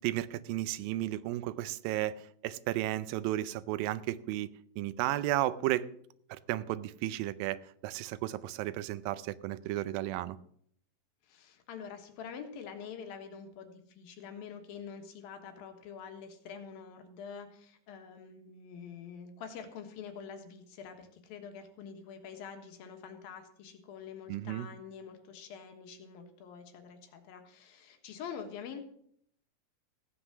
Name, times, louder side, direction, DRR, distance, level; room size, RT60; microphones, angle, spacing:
voice 1, 0.0-2.2 2.4-4.5 4.8-5.9 6.3-10.4 24.3-24.7, right 15 dB, 85° right, 15 dB, 2.4 m, -33 dB
voice 2, 11.3-28.8, left 7 dB, 85° left, 6 dB, 3.2 m, -46 dB
15.5 x 8.0 x 6.1 m, 0.67 s
omnidirectional pair, 4.1 m